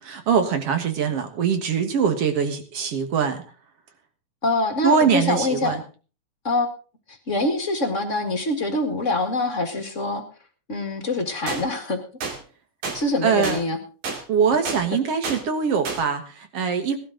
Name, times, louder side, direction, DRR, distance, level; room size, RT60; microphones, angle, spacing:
voice 1, 0.0-3.4 4.8-5.8 13.2-13.6 14.3-17.0, right 6 dB, 55° right, 7 dB, 2.3 m, -22 dB
voice 2, 4.4-5.8 6.4-6.7 7.1-10.2 10.7-12.0 12.9-13.8, left 2 dB, 30° left, 4 dB, 1.5 m, -24 dB
sound 1, 11.5-11.6 12.2-12.4 12.8-13.0 13.4-13.6 14.0-14.2 14.7-14.8 15.2-15.4 15.9-16.0, right 4 dB, 80° right, 4.3 m, -29 dB
17.5 x 12.0 x 3.8 m, 0.37 s
omnidirectional pair, 3.5 m